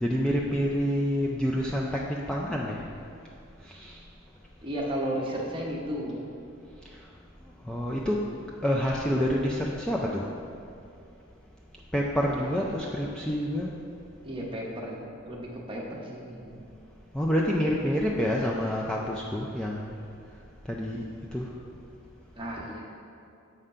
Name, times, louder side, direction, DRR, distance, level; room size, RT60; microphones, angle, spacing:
voice 1, 0.0-1.9 2.3-2.8 3.7-4.0 7.7-8.2 8.6-10.2 11.9-13.7 17.1-19.9 20.7-21.0 21.3-21.5, equal, 5° left, -4 dB, 0.4 m, -27 dB
voice 2, 4.6-6.2 12.3-12.9 14.2-16.6 22.4-22.8, equal, 25° right, -3 dB, 1.0 m, -34 dB
7.6 x 3.7 x 5.5 m, 2.6 s
head